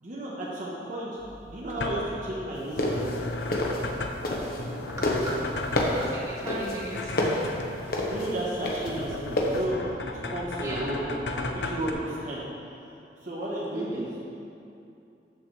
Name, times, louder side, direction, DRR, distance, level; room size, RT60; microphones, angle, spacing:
voice 1, 0.0-1.2 1.5-3.1 8.1-9.8 10.0-12.4 13.2-14.1, right 1 dB, 45° right, -6 dB, 1.1 m, -33 dB
sound 1, 1.2-11.9, left 2 dB, 85° left, 0.7 m, -35 dB
sound 2, 2.6-4.7 5.0-9.6, left 1 dB, 55° left, 1.1 m, -28 dB
voice 2, 6.0-7.1 10.6-10.9 13.7-14.0, right 1 dB, 20° right, -7 dB, 1.8 m, -36 dB
13.0 x 6.7 x 3.3 m, 2.7 s
head